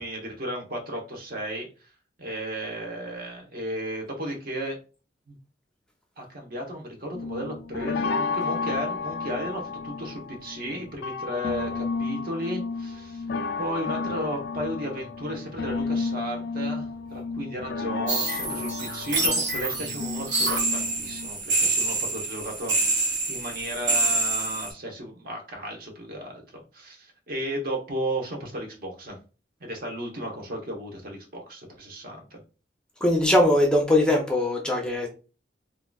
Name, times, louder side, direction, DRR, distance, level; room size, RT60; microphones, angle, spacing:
voice 1, 0.0-1.7 2.2-4.8 5.3-5.4 6.2-13.2 13.6-29.2 29.6-32.4, equal, 55° right, 1 dB, 1.0 m, -34 dB
sound 1, 7.1-21.3, left 4 dB, 65° left, 0.4 m, -32 dB
sound 2, 18.1-24.7, right 3 dB, 80° right, 1.5 m, -26 dB
voice 2, 33.0-35.1, left 1 dB, 5° left, 0 dB, 0.6 m, -21 dB
3.7 x 2.5 x 2.3 m, 0.34 s
head